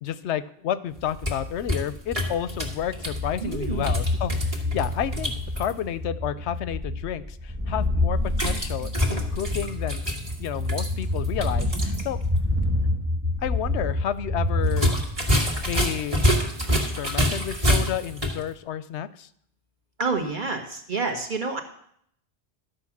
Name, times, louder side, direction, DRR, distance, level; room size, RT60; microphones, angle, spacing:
voice 1, 0.0-10.0 10.4-12.2 13.4-15.0 15.6-16.2 16.8-19.3, left 10 dB, 90° left, 15 dB, 0.9 m, -31 dB
sound 1, 1.0-5.7 8.3-12.1 12.4-12.5 14.7-18.4, equal, 30° right, 1.8 m, -27 dB
sound 2, 3.0-15.9, left 2 dB, 15° right, 0.6 m, -28 dB
voice 2, 3.4-3.9 20.0-21.6, right 4 dB, 50° right, 3 dB, 1.5 m, -28 dB
12.0 x 5.2 x 7.2 m, 0.67 s
omnidirectional pair, 1.1 m